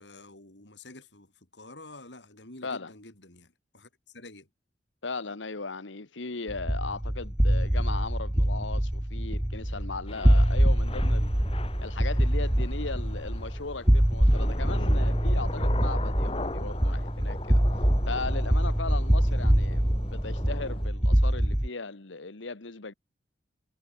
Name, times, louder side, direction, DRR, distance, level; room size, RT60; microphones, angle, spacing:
voice 1, 0.0-4.5, left 2 dB, 70° left, 4.9 m, -49 dB
voice 2, 5.0-11.4 11.8-17.6 18.1-22.9, left 4 dB, 85° left, 1.4 m, -37 dB
sound 1, 6.5-21.7, equal, 5° right, 0.4 m, -24 dB
Thunder / Rain, 10.1-20.9, left 2 dB, 30° left, 1.5 m, -41 dB
head